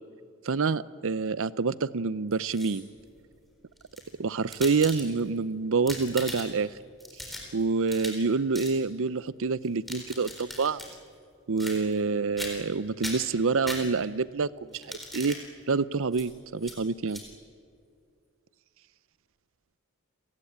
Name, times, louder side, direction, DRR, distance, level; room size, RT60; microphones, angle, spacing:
voice 1, 0.4-2.9 4.2-6.7 7.5-10.8 11.5-14.8 15.1-15.4 15.7-17.2, right 4 dB, 60° right, 18 dB, 0.6 m, -27 dB
sound 1, 2.3-3.0 3.8-5.4 5.7-6.7 7.0-8.3 8.5-8.8 9.6-10.9 11.6-12.1 12.4-12.7 13.0-14.2 14.7-15.4 16.1-16.3 16.6-16.8 17.1-17.2, left 1 dB, ahead, 4.1 m, -39 dB
29.5 x 18.0 x 8.7 m, 2.3 s
head